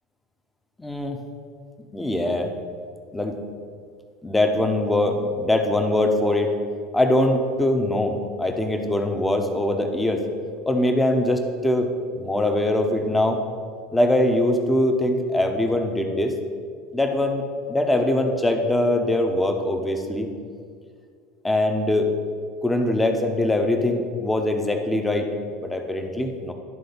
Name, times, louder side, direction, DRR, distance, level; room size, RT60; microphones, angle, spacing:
voice 1, 0.8-1.2 1.9-2.5 3.1-3.4 4.2-6.5 6.9-10.2 10.7-13.4 13.9-16.4 16.9-20.3 21.4-22.1 22.6-25.3 25.6-26.5, left 1 dB, 10° left, 4 dB, 0.9 m, -22 dB
11.0 x 3.8 x 5.3 m, 2.2 s
figure-of-eight pair, 75°, 0 cm